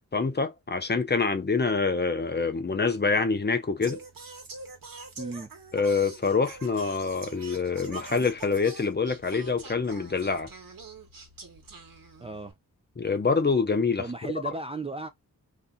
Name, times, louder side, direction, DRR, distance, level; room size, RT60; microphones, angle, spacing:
voice 1, 0.1-4.0 5.7-10.5 13.0-14.1, left 4 dB, 30° left, 0.6 m, -26 dB
Singing, 3.8-12.5, right 3 dB, 85° right, 1.2 m, -45 dB
voice 2, 5.2-5.5 12.2-12.5 14.0-15.1, right 3 dB, 20° right, 0.4 m, -35 dB
2.8 x 2.3 x 3.6 m
wide cardioid pair, 105°, 34 cm